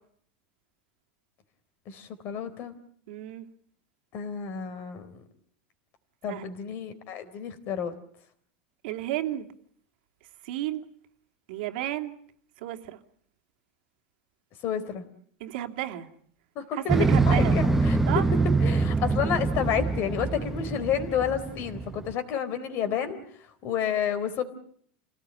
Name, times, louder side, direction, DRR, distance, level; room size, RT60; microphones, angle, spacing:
voice 1, 1.9-2.7 4.1-5.2 6.2-7.9 14.6-15.0 16.6-18.0 18.6-23.2 23.6-24.4, left 8 dB, 40° left, 11 dB, 3.8 m, -30 dB
voice 2, 3.1-3.5 6.3-6.5 8.8-9.5 10.4-10.8 11.5-12.1 12.6-13.0 15.4-16.1 16.7-17.6 18.1-18.2, right 14 dB, 70° right, 5 dB, 2.7 m, -32 dB
Motorcycle, 16.9-22.1, right 3 dB, 5° right, 1.0 m, -25 dB
29.0 x 18.0 x 9.0 m, 0.63 s
supercardioid pair, 155°, 6 cm